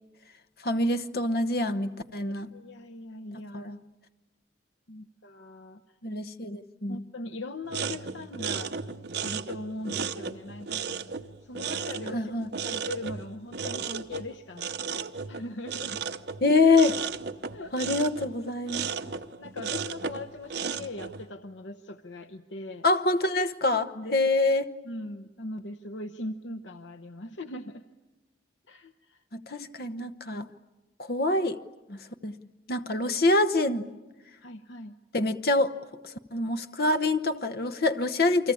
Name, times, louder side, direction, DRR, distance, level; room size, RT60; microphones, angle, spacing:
voice 1, 0.6-2.5 3.5-3.8 6.0-7.0 12.1-12.5 16.4-17.0 17.7-18.9 22.8-24.6 29.3-30.5 31.0-31.6 31.9-32.3 32.7-33.9 35.1-35.8 36.0-38.5, left 2 dB, 55° left, 9 dB, 1.0 m, -25 dB
voice 2, 2.3-3.7 4.9-6.0 6.9-8.7 9.2-12.4 12.6-16.0 17.5-17.7 18.9-22.8 23.7-24.2 24.8-27.8 28.7-29.2 29.5-29.7 30.3-30.5 34.4-34.9, left 2 dB, 80° left, 8 dB, 0.9 m, -40 dB
sound 1, 7.7-21.3, right 6 dB, 60° right, 0.9 m, -35 dB
29.0 x 24.0 x 8.5 m, 1.1 s
head